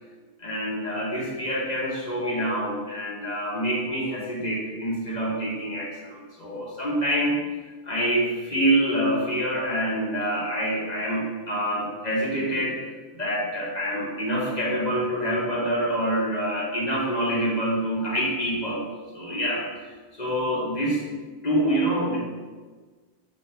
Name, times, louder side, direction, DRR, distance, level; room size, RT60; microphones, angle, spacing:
voice 1, 0.4-7.4 7.8-12.8 13.1-18.8 19.1-19.6 20.1-21.0 21.4-22.2, right 1 dB, 40° left, -6 dB, 1.1 m, -26 dB
5.7 x 2.9 x 3.2 m, 1.4 s
omnidirectional pair, 1.1 m